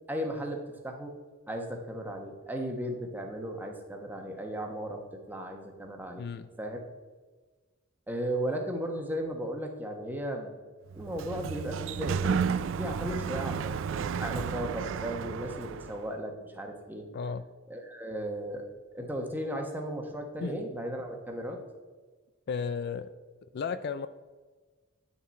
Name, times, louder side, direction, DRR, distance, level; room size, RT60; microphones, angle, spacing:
voice 1, 0.1-0.6 0.8-1.1 1.5-5.0 5.3-6.3 6.6-6.8 8.1-10.5 10.9-12.5 12.8-17.0 17.7-18.7 18.9-21.6, equal, 10° right, 2 dB, 1.1 m, -35 dB
voice 2, 6.2-6.5 17.1-17.5 20.4-20.6 22.5-23.1 23.5-24.1, left 5 dB, 50° left, 12 dB, 0.3 m, -34 dB
Sliding door, 10.9-16.0, right 6 dB, 65° right, 0.3 m, -32 dB
9.2 x 5.9 x 4.2 m, 1.3 s
head